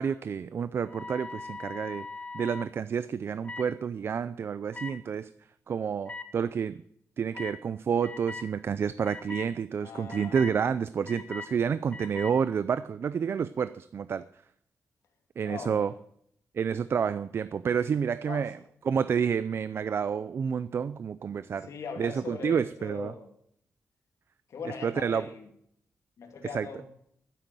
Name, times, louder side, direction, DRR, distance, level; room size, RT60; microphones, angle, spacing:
voice 1, 0.0-2.1 2.3-5.3 5.7-6.8 7.2-14.2 15.4-15.9 16.5-18.6 18.9-21.7 22.0-23.1 24.8-25.3 26.5-26.7, right 7 dB, 50° right, 15 dB, 0.4 m, -29 dB
sound 1, 0.9-2.7 3.4-3.7 4.7-4.9 6.1-6.2 7.3-7.6 8.0-8.5 9.0-9.5 10.1-10.5 11.1-11.5 11.9-12.3, left 3 dB, 25° left, 1.2 m, -40 dB
voice 2, 9.8-10.5 15.4-15.9 18.3-18.5 21.6-23.3 24.5-25.5 26.2-26.8, left 5 dB, 75° left, 3 dB, 2.5 m, -40 dB
12.0 x 10.0 x 7.6 m, 0.70 s
wide cardioid pair, 160°, 5 cm